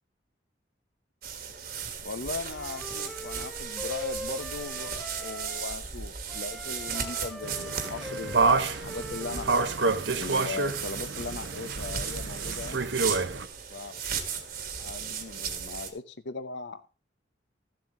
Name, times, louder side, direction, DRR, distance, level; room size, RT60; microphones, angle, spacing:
sound 1, 1.2-15.9, right 7 dB, 55° right, 1.7 m, -36 dB
voice 1, 2.0-9.5 10.2-12.9 13.7-14.0 14.8-16.9, left 4 dB, 75° left, 0.8 m, -39 dB
Wind instrument woodwind instrument, 2.4-5.8 6.3-10.0, left 1 dB, 5° left, 0.9 m, -41 dB
sound 2, 7.4-13.4, right 4 dB, 75° right, 0.8 m, -29 dB
14.0 x 7.7 x 3.8 m
head